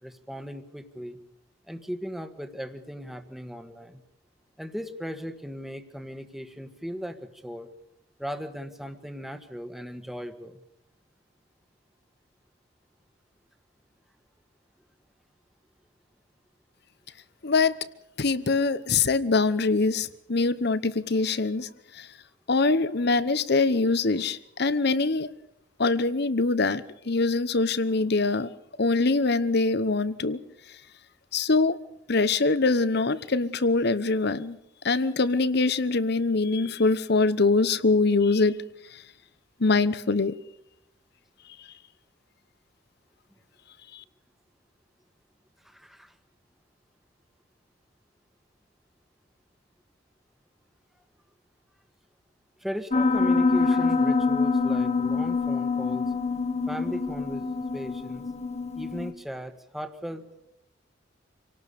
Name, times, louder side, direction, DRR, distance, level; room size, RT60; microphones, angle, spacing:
voice 1, 0.0-1.2 1.7-4.0 4.6-7.7 8.2-10.6 45.6-46.1 52.6-56.1 56.7-58.2 58.7-60.2, equal, ahead, 1.5 m, -37 dB
voice 2, 17.4-17.8 18.2-21.7 22.0-22.1 22.5-25.3 25.8-28.5 28.8-30.4 31.3-31.8 32.1-34.6 34.8-38.6 39.6-40.3, left 3 dB, 60° left, 1.0 m, -23 dB
Piano, 52.9-59.1, left 4 dB, 35° left, 1.2 m, -25 dB
26.5 x 18.0 x 6.9 m
head